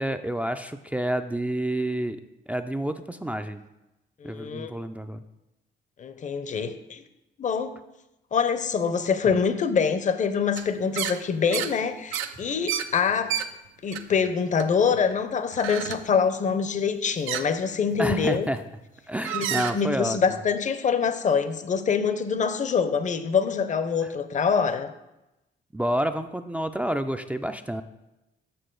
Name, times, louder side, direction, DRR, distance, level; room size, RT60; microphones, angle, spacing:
voice 1, 0.0-2.2 2.5-3.6 4.2-5.2 9.2-9.3 18.0-18.6 19.1-20.4 24.0-24.1 25.7-27.8, right 1 dB, 5° right, 8 dB, 0.3 m, -29 dB
voice 2, 4.2-4.7 6.0-7.0 7.4-7.7 8.3-13.4 13.8-18.5 19.3-24.9, left 6 dB, 40° left, 11 dB, 0.6 m, -25 dB
sound 1, 10.6-10.7 10.9-11.2 11.5-11.7 12.1-13.5 13.9-14.3 14.6-15.1 15.5-16.1 17.3-17.4 18.4-18.6 19.1-19.7, right 10 dB, 90° right, 0.5 m, -30 dB
6.8 x 6.1 x 3.8 m, 0.95 s
cardioid pair, 90°, 20 cm